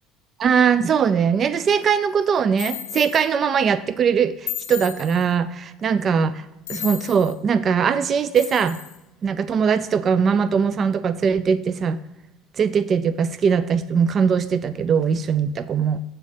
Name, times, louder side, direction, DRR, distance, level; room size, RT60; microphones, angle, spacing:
voice 1, 0.4-6.4 6.7-8.8 9.2-12.0 12.6-16.0, right 6 dB, 45° right, 14 dB, 0.4 m, -21 dB
sound 1, 2.6-3.3 4.5-5.3 6.7-7.4 8.3-9.0, left 11 dB, 75° left, 0.5 m, -33 dB
7.0 x 4.3 x 6.4 m, 0.94 s
hypercardioid pair, 65°, 0 cm